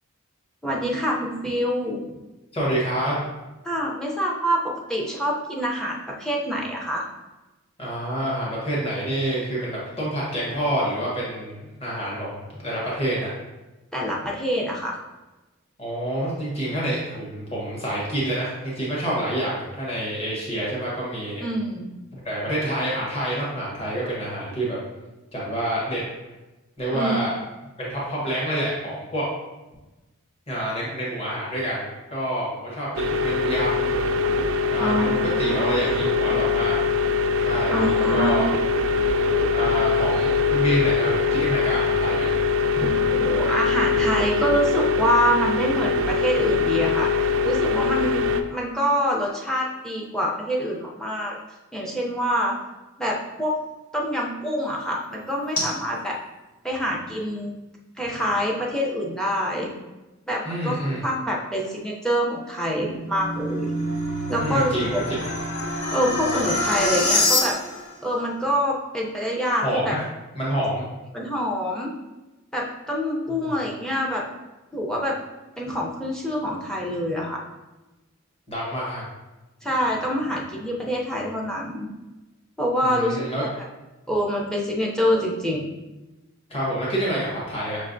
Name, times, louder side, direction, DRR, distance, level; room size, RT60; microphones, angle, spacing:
voice 1, 0.6-2.0 3.6-7.1 13.9-15.0 21.4-21.9 26.9-27.3 34.8-36.4 37.7-38.6 42.7-47.1 47.4-51.4 51.7-52.5 53.0-53.5 53.9-56.2 56.6-57.5 58.0-59.7 60.3-63.7 64.3-65.0 65.9-67.6 68.0-70.0 71.1-71.9 72.5-74.2 74.7-75.2 75.6-77.4 79.6-81.9 82.6-83.5 84.1-85.7, equal, 5° left, -3 dB, 0.5 m, -26 dB
voice 2, 2.5-3.3 7.8-13.3 15.8-21.4 22.1-24.8 25.3-26.0 26.8-27.3 27.8-29.3 30.5-33.9 34.6-36.8 37.4-38.5 39.5-42.3 60.4-61.0 64.4-65.2 69.6-70.0 70.3-70.8 73.3-73.5 78.5-79.0 82.8-83.5 86.5-87.8, right 1 dB, 25° left, -6 dB, 1.1 m, -27 dB
sound 1, 33.0-48.4, left 4 dB, 60° right, 0.3 m, -22 dB
sound 2, 45.8-60.0, left 1 dB, 75° left, 1.4 m, -43 dB
sound 3, 62.9-67.9, left 1 dB, 60° left, 0.9 m, -26 dB
5.7 x 3.2 x 2.6 m, 1.1 s
head